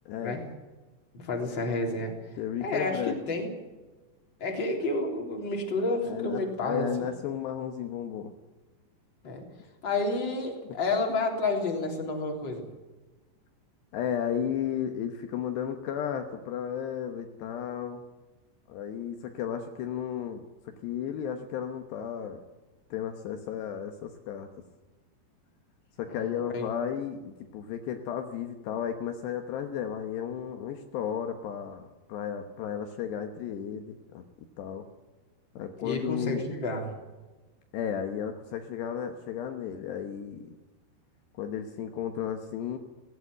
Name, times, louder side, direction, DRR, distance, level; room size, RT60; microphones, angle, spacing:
voice 1, 0.1-0.4 2.4-3.2 6.1-8.3 13.9-18.0 18.7-20.4 20.8-22.4 22.9-24.5 26.0-34.2 34.6-34.8 35.6-36.5 37.7-40.6 41.4-42.8, left 9 dB, 75° left, 5 dB, 3.2 m, -34 dB
voice 2, 1.1-2.1 2.6-3.5 4.4-7.1 9.2-9.4 9.8-12.7 26.1-26.7 35.8-36.9, left 2 dB, 25° left, 1 dB, 3.8 m, -30 dB
18.0 x 16.5 x 9.9 m, 1.2 s
omnidirectional pair, 5.2 m